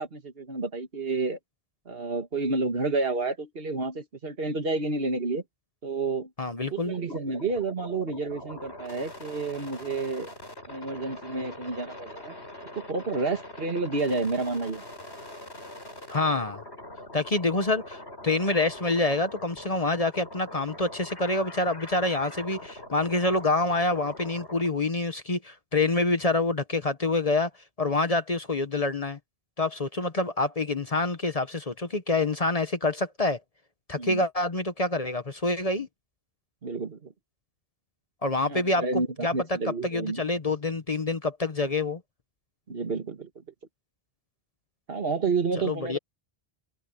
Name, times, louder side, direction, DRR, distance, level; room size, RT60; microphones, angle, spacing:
voice 1, 0.0-1.4 1.9-5.4 5.8-6.3 6.7-10.3 10.7-12.3 12.9-14.8 34.0-34.2 36.6-37.1 38.5-40.2 42.7-43.3 44.9-46.0, right 3 dB, 65° right, 1.9 m, -30 dB
voice 2, 6.4-6.9 16.1-16.6 17.1-27.5 27.8-29.2 29.6-33.4 33.9-35.9 38.2-39.6 39.8-42.0 45.6-46.0, left 2 dB, 35° left, 1.1 m, -27 dB
sound 1, 6.9-24.7, left 1 dB, 80° left, 7.8 m, -43 dB
omnidirectional pair, 1.1 m